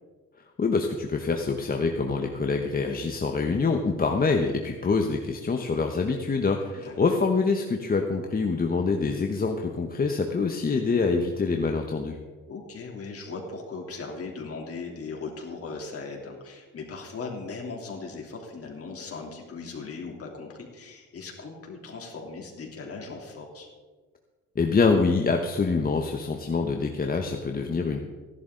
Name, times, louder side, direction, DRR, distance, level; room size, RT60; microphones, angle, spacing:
voice 1, 0.6-12.2 24.6-28.0, left 4 dB, 30° left, 3 dB, 1.1 m, -25 dB
voice 2, 12.5-23.7, left 4 dB, 50° left, 0 dB, 3.3 m, -38 dB
16.0 x 11.5 x 3.9 m, 1.4 s
cardioid pair, 90°, 30 cm